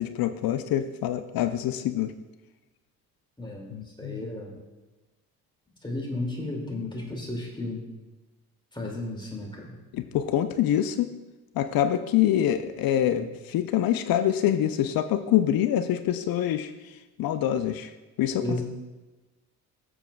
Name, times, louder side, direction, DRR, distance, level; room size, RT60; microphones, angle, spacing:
voice 1, 0.0-2.1 3.7-4.3 9.9-11.1 11.5-16.9 17.2-17.9 18.2-18.6, left 11 dB, 50° left, 10 dB, 0.6 m, -25 dB
voice 2, 3.4-4.5 5.8-7.8 8.7-9.7 13.1-13.3 18.4-18.6, left 2 dB, 10° left, -1 dB, 2.5 m, -34 dB
15.5 x 7.0 x 2.3 m, 1.1 s
hypercardioid pair, 50°, 46 cm